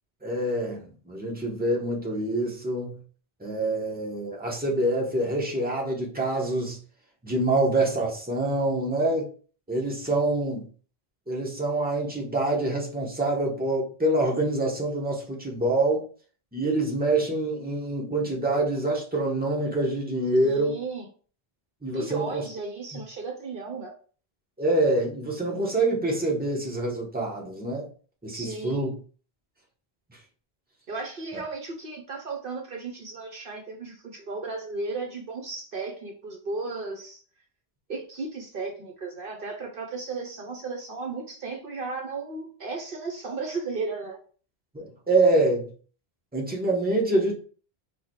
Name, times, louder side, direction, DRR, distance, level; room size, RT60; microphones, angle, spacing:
voice 1, 0.2-3.0 3.4-6.8 7.2-9.3 9.7-10.6 11.3-16.0 16.5-20.8 21.8-22.4 24.6-27.9 28.2-28.9 31.3-31.4 44.7-45.7 46.3-47.3, right 2 dB, 10° right, 1.1 m, -26 dB
voice 2, 20.4-21.1 21.9-23.9 28.3-28.8 30.9-37.2 37.9-44.2, right 3 dB, 60° right, 0.9 m, -35 dB
4.8 x 2.4 x 4.6 m
omnidirectional pair, 1.0 m